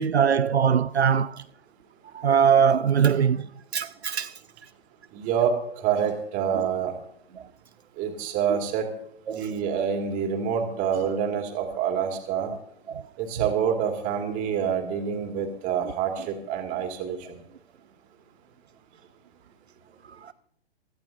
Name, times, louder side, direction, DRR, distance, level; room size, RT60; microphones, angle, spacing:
voice 1, 0.0-1.4 2.1-3.5 3.7-4.3 9.3-9.5 12.9-13.0 20.2-20.3, right 7 dB, 80° right, 0.5 m, -22 dB
voice 2, 5.1-6.9 8.0-8.9 9.3-12.5 13.2-17.4, right 7 dB, 25° right, 2.3 m, -27 dB
24.5 x 14.0 x 2.7 m
figure-of-eight pair, 120°, 32 cm